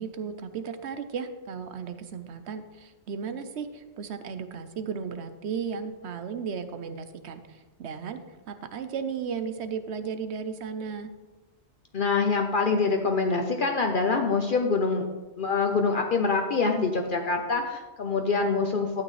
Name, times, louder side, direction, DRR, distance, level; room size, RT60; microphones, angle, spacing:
voice 1, 0.0-11.1, right 6 dB, 75° right, 10 dB, 0.9 m, -35 dB
voice 2, 11.9-15.1 15.4-19.0, left 4 dB, 55° left, 3 dB, 0.8 m, -25 dB
12.5 x 8.6 x 3.2 m, 1.2 s
omnidirectional pair, 1.2 m